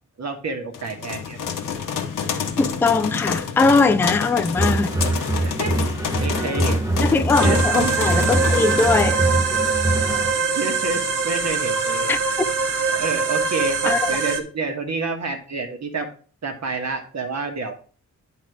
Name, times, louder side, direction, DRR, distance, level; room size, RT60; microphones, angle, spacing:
voice 1, 0.2-1.5 5.4-5.8 6.1-6.8 7.4-7.9 10.4-12.1 12.9-16.1 16.4-17.7, right 3 dB, 55° right, 1.7 m, -28 dB
sound 1, 0.7-9.0, left 7 dB, 80° left, 1.0 m, -28 dB
voice 2, 2.6-4.9 7.0-9.4 12.1-12.5 13.9-14.2, left 3 dB, 5° left, 0.3 m, -20 dB
sound 2, 4.5-10.3, right 2 dB, 10° right, 0.9 m, -23 dB
sound 3, 7.3-14.4, right 4 dB, 75° right, 1.2 m, -23 dB
9.5 x 4.0 x 4.9 m
wide cardioid pair, 140°, 32 cm